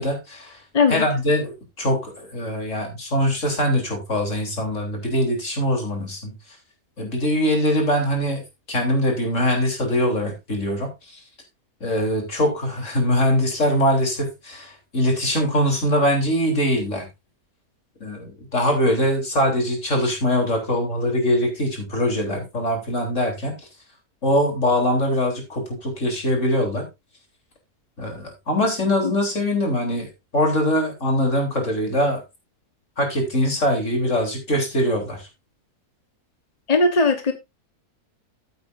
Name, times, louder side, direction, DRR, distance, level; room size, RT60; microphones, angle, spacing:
voice 1, 0.0-0.6 0.9-6.3 7.0-8.4 8.7-11.2 11.8-17.1 18.0-23.5 24.2-26.8 28.0-32.2 33.0-35.3, equal, 50° left, 4.0 m, -22 dB
voice 2, 0.7-1.1 29.0-29.1 36.7-37.3, left 3 dB, 25° left, 1.1 m, -18 dB
14.5 x 8.3 x 2.6 m
omnidirectional pair, 1.7 m